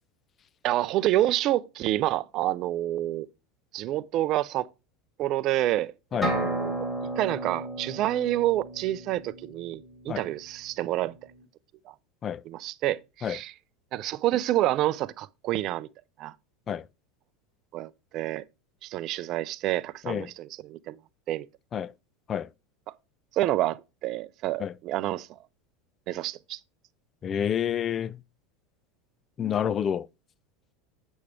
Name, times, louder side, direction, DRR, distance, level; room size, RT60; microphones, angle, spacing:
voice 1, 0.6-3.3 3.7-4.7 5.2-6.9 7.2-11.2 11.9-12.0 12.4-13.5 13.9-15.9 16.2-16.3 17.7-18.4 18.8-21.0 21.3-21.5 22.9-23.0 23.3-25.3 26.1-26.6, right 14 dB, 50° right, 0.5 m, -28 dB
sound 1, 6.2-10.0, right 1 dB, 20° left, 4.3 m, -33 dB
voice 2, 27.2-28.2 29.4-30.1, left 9 dB, 35° left, 0.4 m, -28 dB
8.4 x 6.2 x 3.4 m
hypercardioid pair, 85°, 0 cm